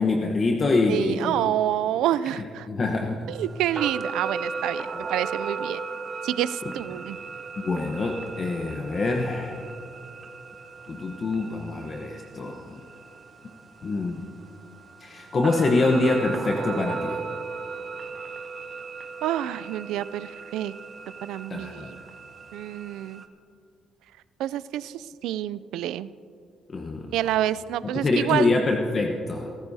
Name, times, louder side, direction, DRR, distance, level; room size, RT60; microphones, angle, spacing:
voice 1, 0.0-1.3 2.7-3.3 7.6-9.6 10.9-12.8 13.8-14.2 15.0-17.2 21.5-21.9 26.7-27.1 27.9-29.5, left 3 dB, 40° left, 2 dB, 1.0 m, -25 dB
voice 2, 0.9-2.7 3.3-5.8 6.2-7.2 19.2-20.7 21.2-22.0 22.5-23.2 24.4-26.1 27.1-28.5, right 12 dB, 90° right, 16 dB, 0.3 m, -28 dB
sound 1, 3.3-23.3, right 4 dB, 40° right, 1.0 m, -37 dB
23.5 x 13.5 x 2.8 m, 2.6 s
cardioid pair, 90°, 0 cm